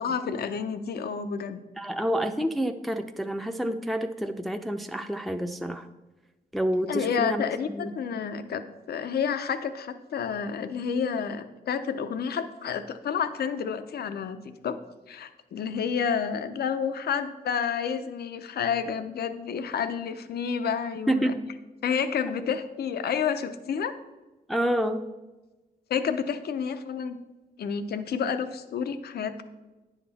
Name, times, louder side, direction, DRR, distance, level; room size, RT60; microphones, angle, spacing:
voice 1, 0.0-1.6 6.9-8.6 8.9-14.4 14.6-14.8 15.1-21.3 21.8-23.9 25.9-27.2 27.6-29.4, left 7 dB, 75° left, 10 dB, 0.6 m, -30 dB
voice 2, 1.8-5.9 6.5-8.0 21.1-21.4 24.5-25.1, equal, ahead, 6 dB, 0.6 m, -28 dB
9.5 x 5.9 x 4.1 m, 1.1 s
cardioid pair, 50°, 16 cm